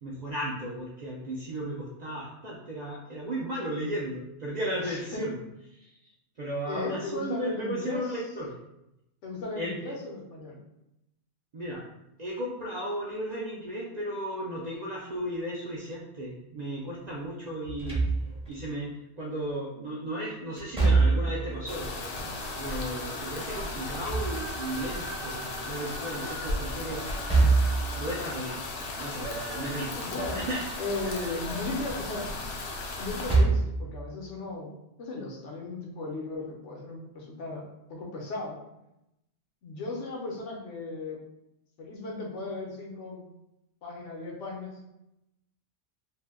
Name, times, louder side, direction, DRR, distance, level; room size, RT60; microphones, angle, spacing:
voice 1, 0.0-5.3 5.7-6.1 6.4-8.5 9.5-9.9 11.5-11.8 12.2-18.0 18.5-18.9 19.2-21.9 22.6-27.0 27.9-28.6 29.0-30.1 30.3-30.6, right 1 dB, 60° right, -5 dB, 0.4 m, -35 dB
voice 2, 4.8-5.2 6.7-8.2 9.2-10.6 30.0-30.5 30.8-32.3 33.0-34.7 35.0-37.6 37.9-38.6 39.6-41.2 41.8-43.2 43.8-44.8, left 2 dB, 75° left, -1 dB, 1.0 m, -36 dB
Slam / Thump thud, 17.6-18.6 20.6-21.5 23.7-24.8 27.1-27.9 29.9-30.5 30.9-31.0 33.0-33.8, right 3 dB, 5° right, 0.5 m, -24 dB
sound 1, 21.2-28.6 29.1-31.6, right 2 dB, 75° right, 0.9 m, -43 dB
sound 2, 21.7-33.4, left 2 dB, 60° left, 0.6 m, -36 dB
2.6 x 2.1 x 3.4 m, 0.87 s
omnidirectional pair, 1.2 m